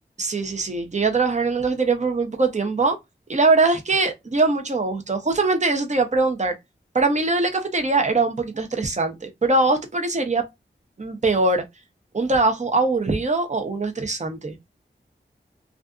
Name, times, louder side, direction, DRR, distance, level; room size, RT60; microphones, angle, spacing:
voice 1, 0.2-3.0 3.3-6.5 6.9-10.4 11.0-11.6 12.1-14.6, right 3 dB, 35° right, 0.7 m, -22 dB
2.5 x 2.4 x 2.2 m
wide cardioid pair, 40°, 20 cm